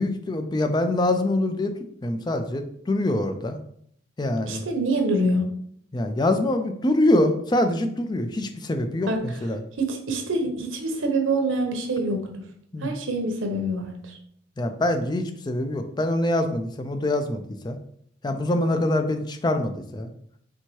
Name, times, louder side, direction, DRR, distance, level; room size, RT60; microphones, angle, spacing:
voice 1, 0.0-1.7 2.0-3.6 4.2-4.6 5.9-9.6 12.7-12.9 14.6-17.8 18.2-20.1, left 1 dB, 20° left, 7 dB, 0.3 m, -24 dB
voice 2, 4.5-5.5 9.1-9.2 9.8-12.3 12.8-14.2, right 1 dB, 85° right, 3 dB, 0.9 m, -25 dB
4.4 x 3.4 x 3.0 m, 0.67 s
head